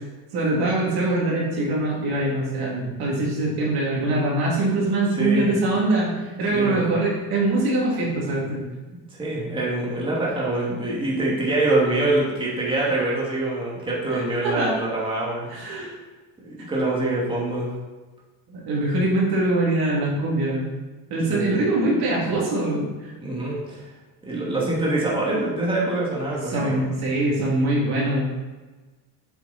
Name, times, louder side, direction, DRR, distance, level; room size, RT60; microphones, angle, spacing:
voice 1, 0.3-8.6 14.1-14.8 15.5-15.9 18.5-20.7 21.1-23.1 26.3-28.3, right 2 dB, 65° right, -4 dB, 3.1 m, -23 dB
voice 2, 5.2-5.6 6.5-6.8 9.2-15.9 16.4-17.7 21.3-21.8 23.2-23.9 24.2-26.9, right 2 dB, 10° right, -6 dB, 2.5 m, -25 dB
7.9 x 7.0 x 4.4 m, 1.3 s
cardioid pair, 130°, 41 cm